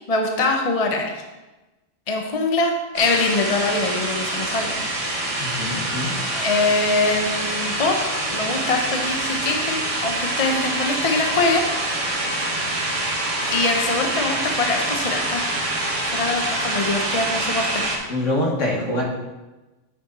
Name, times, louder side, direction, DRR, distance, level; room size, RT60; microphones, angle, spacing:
voice 1, 0.1-1.0 2.1-4.8 6.3-8.0 8.2-11.6 12.6-13.0 13.4-15.5 16.0-17.8, left 3 dB, 35° left, 3 dB, 0.8 m, -23 dB
sound 1, 2.9-18.0, right 1 dB, 80° right, 1.9 m, -25 dB
voice 2, 5.4-6.2 18.1-19.0, left 1 dB, 85° left, -2 dB, 2.1 m, -24 dB
8.6 x 6.4 x 4.2 m, 1.1 s
omnidirectional pair, 1.3 m